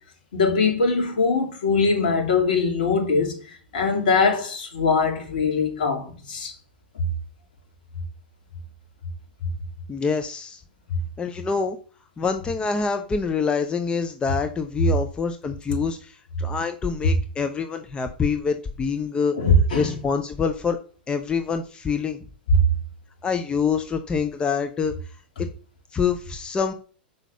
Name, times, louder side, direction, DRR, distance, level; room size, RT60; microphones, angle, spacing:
voice 1, 0.3-3.3 3.7-6.5 19.4-19.9, left 4 dB, 60° left, 3.0 m, -21 dB
voice 2, 9.9-10.6 11.2-11.8 12.2-19.3 19.7-20.8 21.1-22.2 23.2-24.9 25.4-25.5 25.9-26.7, left 5 dB, 15° left, 0.8 m, -26 dB
6.1 x 5.5 x 6.8 m
figure-of-eight pair, 95°, 5 cm